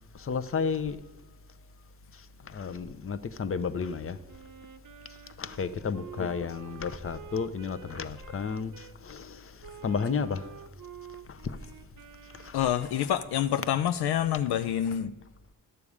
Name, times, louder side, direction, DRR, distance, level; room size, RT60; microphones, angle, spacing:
voice 1, 0.1-1.0 2.1-4.2 5.4-10.5 11.3-11.6 12.3-12.7, left 5 dB, 35° left, 0.7 m, -33 dB
Wind instrument woodwind instrument, 4.3-9.0 9.6-13.6, right 8 dB, 50° right, 0.7 m, -49 dB
voice 2, 12.5-15.1, left 10 dB, 75° left, 0.5 m, -27 dB
11.0 x 6.9 x 4.9 m
supercardioid pair, 45°, 40 cm